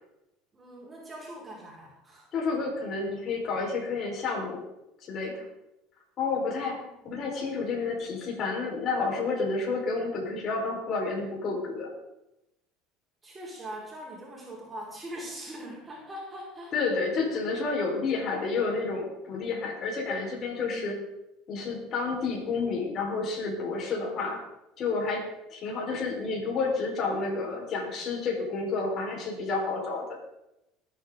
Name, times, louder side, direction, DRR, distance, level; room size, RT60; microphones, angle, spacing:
voice 1, 0.5-2.3 6.5-7.0 13.2-16.7 20.5-21.0, right 1 dB, 25° right, -4 dB, 4.8 m, -42 dB
voice 2, 2.3-4.6 5.0-5.5 6.2-6.8 7.0-11.9 16.7-21.0 21.5-24.4 24.8-30.0, left 4 dB, 45° left, -1 dB, 4.6 m, -30 dB
20.5 x 9.0 x 3.9 m, 0.90 s
hypercardioid pair, 85°, 0 cm